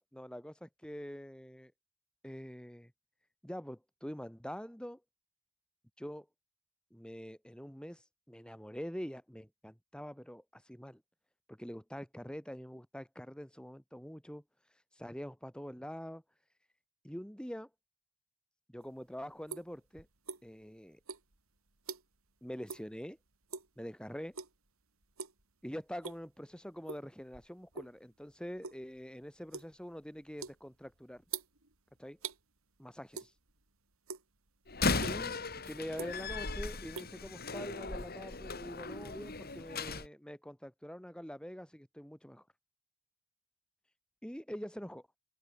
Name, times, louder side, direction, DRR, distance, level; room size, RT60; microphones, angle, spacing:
voice 1, 0.0-1.7 2.2-2.9 3.4-5.0 6.0-6.3 6.9-8.0 8.3-11.0 11.5-14.4 15.0-16.2 17.0-17.7 18.7-20.1 20.4-21.0 22.4-23.2 23.8-24.4 25.6-31.2 32.0-32.2 32.8-33.3 35.0-42.4 44.2-45.1, equal, 5° left, 7.1 m, -45 dB
sound 1, 18.8-20.7 21.0-22.3 22.6-22.9 23.3-23.8 24.3-24.7 25.0-25.4 25.8-26.4 26.9-28.0 28.3-32.4 33.1-33.7 33.9-34.6 35.0-35.2 35.7-36.4 36.7-37.8, right 6 dB, 80° right, 4.5 m, -45 dB
Slam, 34.7-40.1, left 3 dB, 45° left, 4.2 m, -37 dB
open air
head